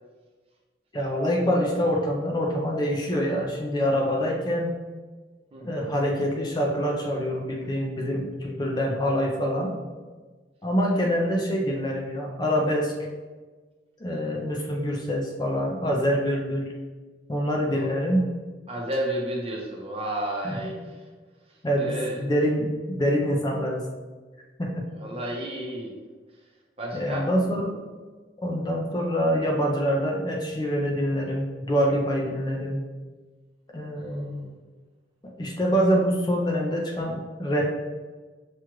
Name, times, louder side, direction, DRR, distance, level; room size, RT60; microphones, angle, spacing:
voice 1, 0.9-4.8 5.6-9.7 10.6-12.9 14.0-16.7 17.3-18.3 20.4-20.6 21.6-23.9 24.6-24.9 26.9-27.8 28.4-32.8 33.7-34.5 35.4-37.7, equal, 20° left, -1 dB, 0.5 m, -25 dB
voice 2, 5.5-5.9 10.9-11.2 17.7-18.1 18.7-21.0 21.5-22.2 25.0-26.0 26.8-27.3 33.9-34.5, right 1 dB, 30° right, -1 dB, 0.7 m, -33 dB
6.0 x 2.4 x 3.0 m, 1.3 s
head